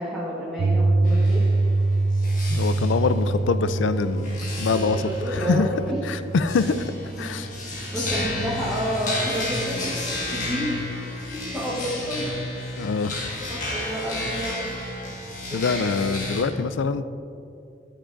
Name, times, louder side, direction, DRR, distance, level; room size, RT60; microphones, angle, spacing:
voice 1, 0.0-1.4 4.6-6.0 7.2-7.3 7.9-10.0 10.3-10.8 11.2-12.2 13.5-14.6 15.5-15.7, equal, 5° right, -11 dB, 1.4 m, -30 dB
Piano, 0.6-8.7, right 2 dB, 50° right, 0.3 m, -25 dB
sound 1, 1.0-16.4, left 2 dB, 40° left, 1.5 m, -33 dB
voice 2, 2.5-5.7 6.0-6.9 7.2-7.5 12.8-13.3 15.5-17.0, left 4 dB, 80° left, 13 dB, 0.4 m, -24 dB
13.5 x 7.4 x 2.6 m, 2.5 s
head